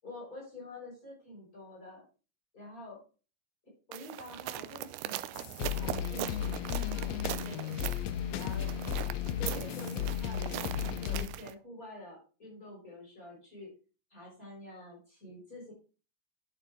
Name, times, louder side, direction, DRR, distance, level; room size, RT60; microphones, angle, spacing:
voice 1, 0.0-2.0 2.5-3.0 3.9-5.3 5.7-7.8 8.3-8.7 9.4-13.7 14.1-15.7, left 1 dB, 25° left, -4 dB, 6.2 m, -47 dB
sound 1, 3.9-11.5, right 14 dB, 80° right, 2.0 m, -40 dB
sound 2, 5.3-11.3, left 10 dB, 80° left, 1.5 m, -34 dB
11.5 x 6.8 x 3.6 m, 0.35 s
omnidirectional pair, 3.7 m